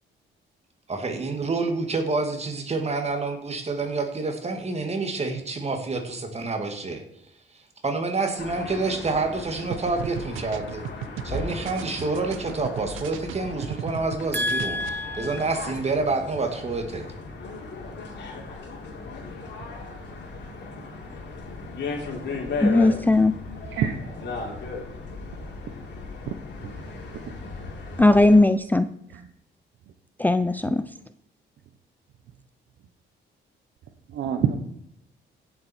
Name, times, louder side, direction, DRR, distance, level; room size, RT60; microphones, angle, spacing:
voice 1, 0.9-7.0 7.8-10.8 11.2-17.1, right 3 dB, 30° right, 5 dB, 2.2 m, -28 dB
sound 1, 8.4-28.4, left 3 dB, 60° left, 3.4 m, -37 dB
sound 2, 9.7-14.2 14.5-14.9, right 11 dB, 90° right, 0.7 m, -36 dB
voice 2, 14.3-15.4 22.6-23.4 28.0-28.9 30.2-30.8, left 2 dB, 10° left, 11 dB, 0.5 m, -19 dB
voice 3, 34.1-34.6, right 8 dB, 75° right, 5 dB, 1.1 m, -26 dB
16.5 x 7.5 x 4.5 m, 0.74 s
cardioid pair, 90°, 20 cm